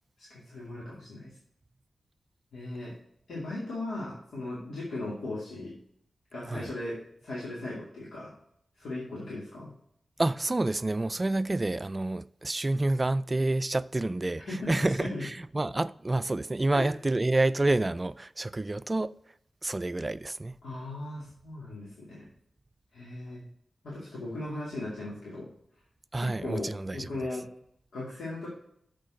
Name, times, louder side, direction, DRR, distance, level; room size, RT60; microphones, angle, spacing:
voice 1, 0.2-1.3 2.5-2.9 3.3-5.7 6.3-7.0 7.2-8.3 8.8-9.7 14.5-15.2 16.7-16.9 20.6-22.3 22.9-23.4 23.8-25.5 26.2-27.4 27.9-28.5, left 2 dB, 90° left, 2.5 m, -37 dB
voice 2, 10.2-19.2 19.6-20.6 26.1-27.1, right 2 dB, 35° right, 0.3 m, -28 dB
6.6 x 6.3 x 6.4 m
cardioid pair, 45°, 0 cm